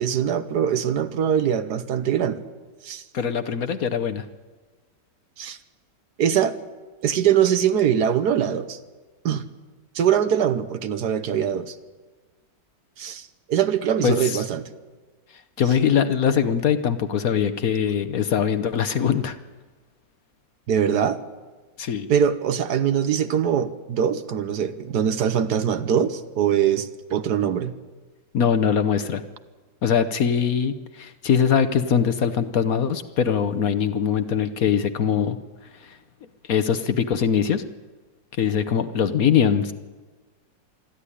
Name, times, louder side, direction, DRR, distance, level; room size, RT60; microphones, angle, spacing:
voice 1, 0.0-2.4 2.8-3.0 5.4-5.6 6.2-6.5 7.0-8.8 9.2-9.4 9.9-11.7 13.0-14.7 20.7-21.2 22.1-27.7, right 9 dB, 70° right, 11 dB, 1.4 m, -22 dB
voice 2, 3.1-4.2 14.0-14.4 15.6-19.4 21.8-22.1 28.3-29.2 29.8-35.4 35.8-36.0 36.5-37.6 38.4-39.7, left 7 dB, 60° left, 11 dB, 1.2 m, -22 dB
26.0 x 11.5 x 10.0 m, 1.3 s
omnidirectional pair, 1.9 m